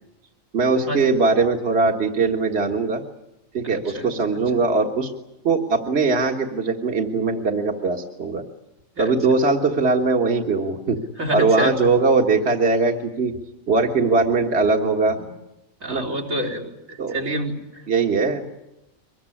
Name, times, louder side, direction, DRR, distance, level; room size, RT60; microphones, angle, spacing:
voice 1, 0.5-3.0 3.5-5.1 5.4-8.4 9.0-11.0 11.3-13.4 13.7-15.2 15.9-16.0 17.0-17.2 17.9-18.4, right 4 dB, 50° right, 2 dB, 2.0 m, -20 dB
voice 2, 3.6-4.2 9.0-9.1 11.2-11.7 15.8-16.7 17.1-17.5, equal, 75° right, 0 dB, 4.2 m, -26 dB
24.0 x 21.0 x 9.9 m, 0.93 s
omnidirectional pair, 1.4 m